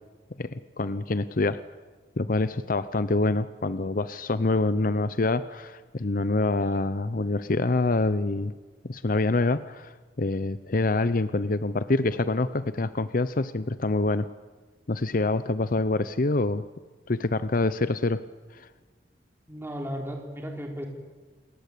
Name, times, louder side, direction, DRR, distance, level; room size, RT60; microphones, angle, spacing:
voice 1, 0.4-1.6 2.2-8.5 8.8-14.3 14.9-16.6 17.1-18.2 18.5-18.7, left 2 dB, 50° left, 14 dB, 0.8 m, -26 dB
voice 2, 19.5-20.9, equal, 15° right, 2 dB, 3.7 m, -35 dB
29.0 x 20.0 x 8.5 m, 1.4 s
head